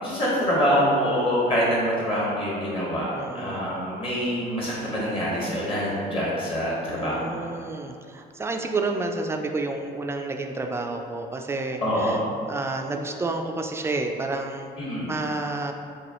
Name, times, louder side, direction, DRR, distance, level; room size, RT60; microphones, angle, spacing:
voice 1, 0.0-7.4 11.8-12.2 14.8-15.1, equal, 30° left, -6 dB, 1.3 m, -25 dB
voice 2, 3.1-3.6 6.9-12.2 12.5-14.7 15.1-15.7, right 3 dB, 15° right, 4 dB, 0.3 m, -30 dB
6.0 x 2.3 x 2.9 m, 2.4 s
cardioid pair, 110°, 17 cm